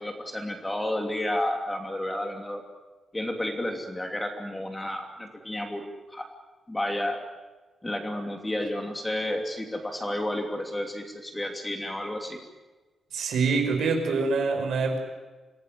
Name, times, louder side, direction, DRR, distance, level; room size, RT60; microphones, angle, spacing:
voice 1, 0.0-2.6 3.1-6.3 6.7-7.2 7.8-12.4, left 1 dB, 10° left, 4 dB, 2.8 m, -31 dB
voice 2, 13.1-15.0, right 4 dB, 65° right, 4 dB, 5.8 m, -25 dB
27.0 x 18.0 x 9.4 m, 1.3 s
wide cardioid pair, 175°, 0 cm